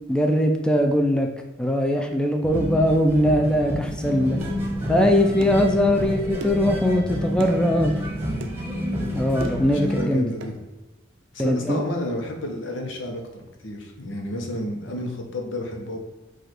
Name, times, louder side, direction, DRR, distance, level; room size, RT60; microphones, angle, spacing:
voice 1, 0.1-1.3 1.6-4.4 4.9-8.0 9.1-10.2 11.4-11.8, equal, 5° left, 3 dB, 0.3 m, -21 dB
sound 1, 2.4-10.0, equal, 15° right, 1.0 m, -29 dB
sound 2, 4.4-4.6 5.4-5.7 6.4-6.7 7.4-7.6 8.4-8.6 9.4-9.7 10.4-10.6 11.4-11.5, right 1 dB, 85° right, 0.5 m, -37 dB
voice 2, 9.7-10.6 11.3-16.0, left 1 dB, 85° left, 2 dB, 0.9 m, -31 dB
4.9 x 2.5 x 4.3 m, 1.1 s
head